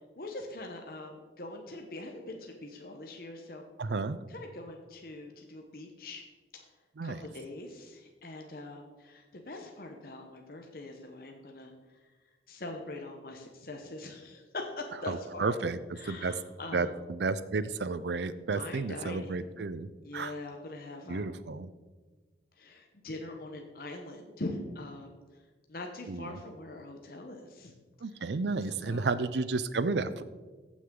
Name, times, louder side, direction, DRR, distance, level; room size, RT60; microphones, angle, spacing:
voice 1, 0.2-3.6 4.3-6.2 6.5-6.6 7.0-11.7 12.5-15.6 16.0-17.0 18.5-19.4 20.0-21.3 22.6-25.2 25.7-27.7 28.2-28.3 28.8-29.2, left 2 dB, 55° left, 3 dB, 0.9 m, -42 dB
voice 2, 3.8-4.2 7.0-7.2 15.1-15.8 16.1-16.3 16.7-20.3 21.1-21.7 26.1-26.4 28.0-30.2, right 3 dB, 75° right, 14 dB, 0.5 m, -32 dB
15.0 x 6.2 x 3.8 m, 1.3 s
head